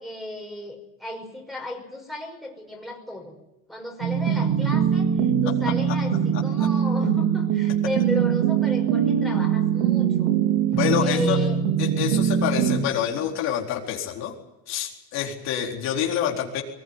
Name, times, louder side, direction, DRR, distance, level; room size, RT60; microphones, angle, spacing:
voice 1, 0.0-3.3 3.7-10.3 11.0-11.6 13.1-13.3, left 1 dB, ahead, -1 dB, 5.7 m, -34 dB
sound 1, 4.0-12.8, right 8 dB, 90° right, 3.6 m, -22 dB
voice 2, 10.7-11.4 11.8-14.3 14.7-16.6, left 9 dB, 55° left, -1 dB, 4.3 m, -27 dB
22.5 x 20.0 x 9.7 m, 0.92 s
cardioid pair, 150°, 31 cm